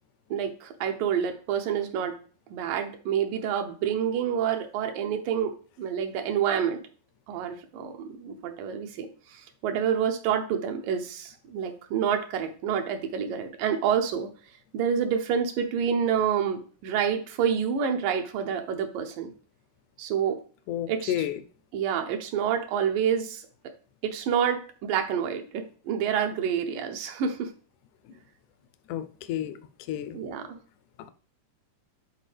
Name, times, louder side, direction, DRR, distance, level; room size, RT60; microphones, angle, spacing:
voice 1, 0.3-2.2 2.5-6.8 7.3-14.3 14.7-19.3 20.0-20.4 20.9-21.3 21.7-23.4 24.0-27.5 30.1-30.6, right 8 dB, 80° right, 2.4 m, -28 dB
voice 2, 20.7-21.4 28.9-29.6 29.9-30.2, left 11 dB, 80° left, 1.9 m, -31 dB
10.5 x 4.1 x 3.3 m
omnidirectional pair, 3.9 m